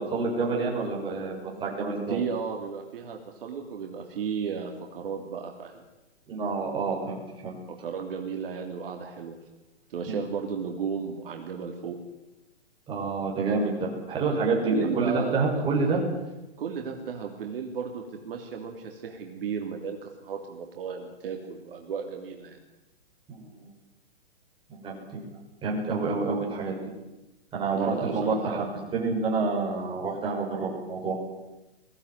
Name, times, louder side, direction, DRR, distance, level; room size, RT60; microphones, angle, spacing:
voice 1, 0.1-2.2 6.3-7.5 10.1-10.2 12.9-16.0 23.3-23.7 24.7-25.2 25.6-26.7 27.5-31.1, right 3 dB, 15° right, -3 dB, 6.4 m, -28 dB
voice 2, 2.1-5.8 7.8-9.4 9.9-12.0 14.6-15.7 16.6-22.6 27.7-28.7, right 6 dB, 55° right, 2 dB, 3.1 m, -34 dB
22.0 x 16.5 x 9.7 m, 1.0 s
hypercardioid pair, 150°, 34 cm